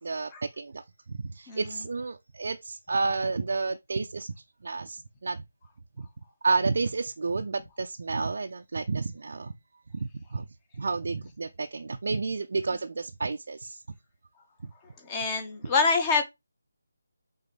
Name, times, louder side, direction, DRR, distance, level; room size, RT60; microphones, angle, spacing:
voice 1, 0.0-4.3 4.6-5.4 6.4-9.5 9.9-10.5 10.8-13.8 14.6-14.7, right 3 dB, 55° right, 0.6 m, -31 dB
voice 2, 15.0-16.2, left 4 dB, 20° left, 1.5 m, -25 dB
8.0 x 3.7 x 3.3 m
figure-of-eight pair, 155°, 0 cm